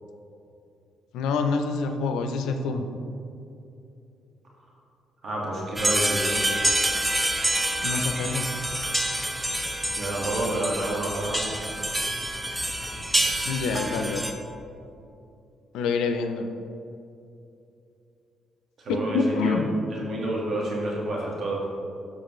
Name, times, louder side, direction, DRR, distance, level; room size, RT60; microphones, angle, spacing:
voice 1, 1.1-2.9 7.8-8.4 13.5-14.2 15.7-16.5 18.9-19.7, left 4 dB, 90° left, 6 dB, 0.5 m, -26 dB
voice 2, 5.2-6.5 10.0-11.4 18.8-19.6 19.9-21.6, right 1 dB, 50° right, -4 dB, 1.7 m, -29 dB
sound 1, 5.8-14.3, right 1 dB, 5° right, 0.7 m, -27 dB
7.5 x 6.7 x 3.1 m, 2.6 s
cardioid pair, 90°, 0 cm